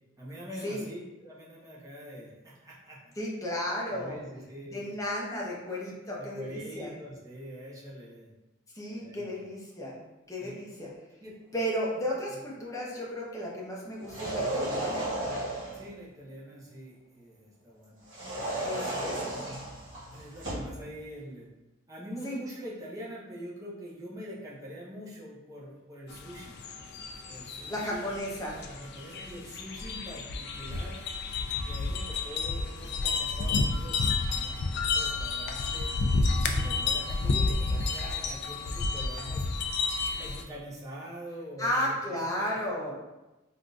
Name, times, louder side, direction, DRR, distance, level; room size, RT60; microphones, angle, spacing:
voice 1, 0.2-3.1 3.9-5.0 6.2-8.3 9.0-9.5 10.4-10.5 11.2-11.4 15.7-18.0 18.6-19.0 20.1-21.5 21.9-26.6 27.3-28.1 28.6-31.0 31.6-35.9 36.6-39.5 40.1-42.8, equal, 15° right, -7 dB, 0.8 m, -44 dB
voice 2, 3.2-4.2 4.6-6.9 8.7-10.0 10.3-10.9 11.5-15.1 18.7-19.1 22.2-22.4 27.7-28.6 36.5-36.6 41.6-43.0, equal, 15° left, -4 dB, 0.6 m, -34 dB
sound 1, 14.0-15.9 18.1-20.8, right 1 dB, 65° right, 1.2 m, -34 dB
sound 2, 26.1-40.4, left 3 dB, 55° left, 0.3 m, -31 dB
3.6 x 2.5 x 2.3 m, 1.0 s
head